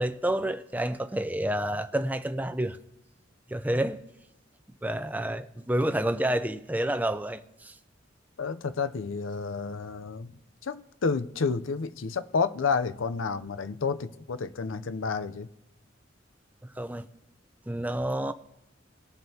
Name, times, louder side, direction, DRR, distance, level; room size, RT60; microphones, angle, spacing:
voice 1, 0.0-2.8 3.5-4.0 4.8-7.7 16.8-17.1 17.7-18.3, right 1 dB, 10° right, 0.5 m, -29 dB
voice 2, 8.4-10.3 10.6-15.5, left 5 dB, 90° left, 0.6 m, -30 dB
20.0 x 7.6 x 2.8 m
head